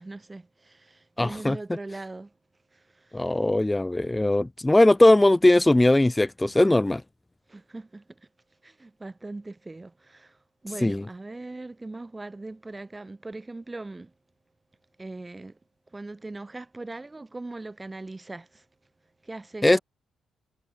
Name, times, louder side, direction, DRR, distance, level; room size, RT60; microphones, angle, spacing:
voice 1, 0.0-2.3 2.7-3.4 7.5-8.2 8.6-10.4 10.6-14.1 15.0-15.6 15.9-18.6 19.2-19.8, right 2 dB, 25° right, 3.8 m, -40 dB
voice 2, 1.2-1.6 3.1-7.0 10.8-11.0 19.6-19.8, left 1 dB, 15° left, 0.5 m, -19 dB
hypercardioid pair, 45°, 0 cm